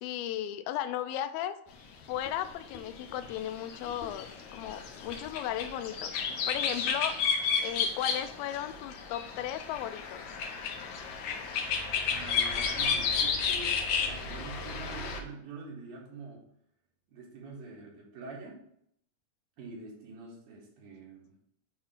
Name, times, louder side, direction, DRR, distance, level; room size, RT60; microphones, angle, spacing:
voice 1, 0.0-1.6 2.1-7.2 7.6-10.3, left 11 dB, 90° left, 11 dB, 2.4 m, -36 dB
sound 1, 2.1-2.5 2.7-15.2, left 5 dB, 70° left, 2.0 m, -32 dB
voice 2, 12.1-16.4 17.1-18.6 19.6-21.3, right 3 dB, 75° right, -2 dB, 3.4 m, -45 dB
8.4 x 2.9 x 5.6 m, 0.70 s
omnidirectional pair, 4.1 m